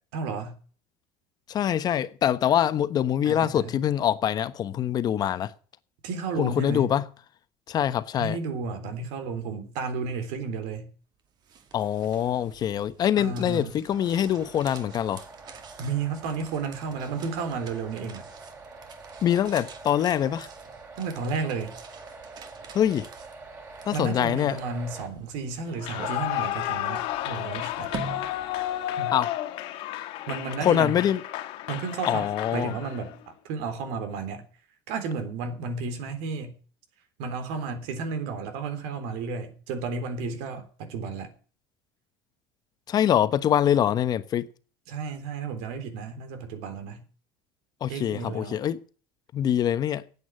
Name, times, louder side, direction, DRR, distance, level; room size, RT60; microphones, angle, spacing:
voice 1, 0.1-0.6 3.2-3.8 6.0-6.9 8.2-10.9 13.2-13.8 15.8-18.3 21.0-21.8 23.9-27.9 29.0-29.2 30.3-31.0 31.7-34.4 34.9-36.6 37.2-41.3 44.9-47.0 47.9-48.6, right 4 dB, 75° right, 3.6 m, -32 dB
voice 2, 1.5-5.5 6.4-7.0 7.7-8.4 11.7-15.2 19.2-20.5 22.7-23.1 23.9-24.6 29.1-29.3 30.6-31.2 32.1-32.7 42.9-44.5 47.8-48.8 49.3-50.0, left 10 dB, 40° left, 1.1 m, -24 dB
sound 1, 11.2-29.2, right 5 dB, 45° right, 2.3 m, -46 dB
sound 2, 13.9-25.1, right 3 dB, 25° right, 4.3 m, -45 dB
Clapping / Cheering / Applause, 25.7-33.1, left 14 dB, 65° left, 2.1 m, -32 dB
9.7 x 8.8 x 10.0 m
cardioid pair, 125°, 10 cm